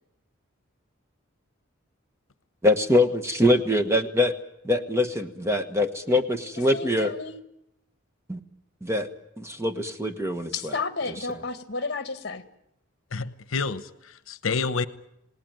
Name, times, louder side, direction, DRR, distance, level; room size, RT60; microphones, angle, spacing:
voice 1, 2.6-4.3 4.6-7.1 8.3-8.4 8.8-9.1 9.4-10.7, left 1 dB, 15° right, 1.3 m, -23 dB
voice 2, 6.7-7.4 10.5-12.4, left 4 dB, 50° left, 1.9 m, -32 dB
voice 3, 13.1-14.9, left 4 dB, 80° left, 1.0 m, -29 dB
28.0 x 18.5 x 9.3 m
head